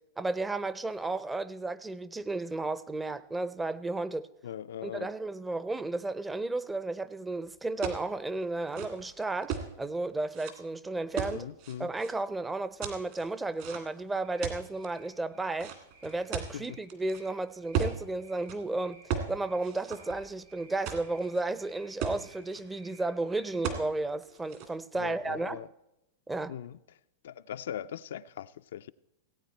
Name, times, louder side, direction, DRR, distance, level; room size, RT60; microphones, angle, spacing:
voice 1, 0.2-4.3 4.8-11.5 11.8-15.7 16.0-19.0 19.3-25.6 26.3-26.6, right 2 dB, 10° right, 0.5 m, -33 dB
voice 2, 4.4-5.1 11.3-11.9 16.5-16.8 24.9-25.7 26.5-26.8 27.2-28.9, left 9 dB, 75° left, 0.3 m, -40 dB
sound 1, 7.8-8.1 8.6-9.7 10.3-10.5 11.2-12.1 12.8-14.0 14.4-14.9 15.6-17.2 17.7-18.0 18.4-18.6 19.1-19.3 19.6-20.4 20.9-21.4 21.7-21.8 22.0-22.6 23.6-23.9 24.2-24.7, right 7 dB, 55° right, 2.0 m, -35 dB
sound 2, 14.2-23.6, right 3 dB, 75° right, 4.1 m, -59 dB
17.0 x 8.7 x 4.3 m
hypercardioid pair, 120°, 0 cm